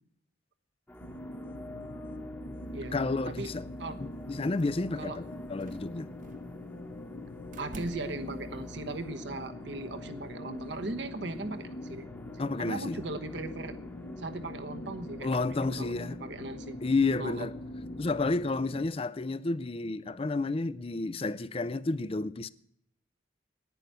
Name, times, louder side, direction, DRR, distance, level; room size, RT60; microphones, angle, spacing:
sound 1, 0.9-18.9, left 1 dB, 10° left, 1.1 m, -48 dB
sound 2, 1.0-18.9, left 1 dB, 55° left, 0.8 m, -43 dB
voice 1, 2.9-3.6 4.0-6.1 12.4-13.0 15.2-16.2 16.8-17.5 18.0-22.5, left 3 dB, 30° left, 0.5 m, -31 dB
sound 3, 4.5-5.0 5.4-6.5 7.5-8.4, right 2 dB, 45° right, 0.7 m, -50 dB
voice 2, 7.6-12.1 12.3-13.8 14.2-15.9 16.2-16.8 17.2-17.5, right 2 dB, 70° right, 1.2 m, -38 dB
10.5 x 9.7 x 9.1 m
head